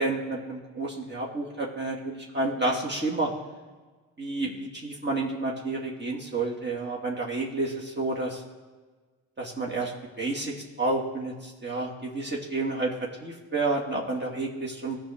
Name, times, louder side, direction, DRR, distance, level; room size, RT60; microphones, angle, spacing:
voice 1, 0.0-3.3 4.2-8.4 9.4-12.9 13.2-15.0, right 2 dB, 30° right, -3 dB, 2.3 m, -30 dB
16.5 x 5.8 x 3.7 m, 1.4 s
hypercardioid pair, 50°, 35 cm